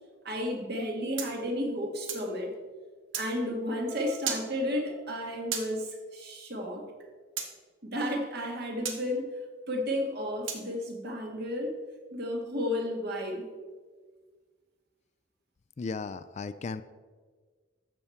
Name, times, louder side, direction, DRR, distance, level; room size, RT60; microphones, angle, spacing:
voice 1, 0.2-2.6 3.2-6.8 7.8-9.3 9.7-11.7 12.1-13.5, left 1 dB, 55° right, 1 dB, 1.8 m, -32 dB
sound 1, 1.2-2.3 3.1-3.3 4.3-4.5 5.5-5.7 7.4-7.5 8.9-9.0 10.5-10.7, right 7 dB, 80° right, 1.4 m, -34 dB
sound 2, 3.6-5.3, equal, 35° right, 1.2 m, -45 dB
voice 2, 15.8-16.8, left 4 dB, 35° left, 14 dB, 0.3 m, -35 dB
13.0 x 7.1 x 4.4 m, 1.5 s
head